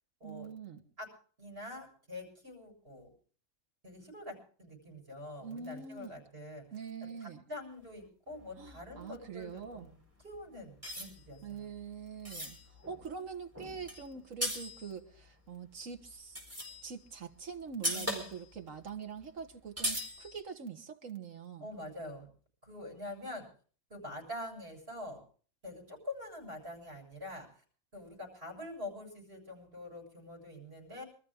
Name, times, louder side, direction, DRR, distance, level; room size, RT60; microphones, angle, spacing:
voice 1, 0.2-0.8 5.4-6.1 6.7-7.4 8.6-9.9 11.4-16.4 16.8-21.7, right 6 dB, 75° right, 5 dB, 1.9 m, -44 dB
voice 2, 1.4-3.1 3.8-6.6 7.2-11.6 17.9-18.3 21.6-22.3 22.6-23.5 23.9-25.2 25.6-27.5 27.9-31.0, left 1 dB, 45° right, 1 dB, 7.2 m, -45 dB
sound 1, 8.3-10.4 10.8-15.3 15.9-17.1 17.3-17.4 17.7-18.6 18.9-19.0 19.2-19.3 19.8-20.4, equal, 10° right, 4.4 m, -40 dB
25.5 x 13.5 x 3.6 m, 0.43 s
omnidirectional pair, 1.4 m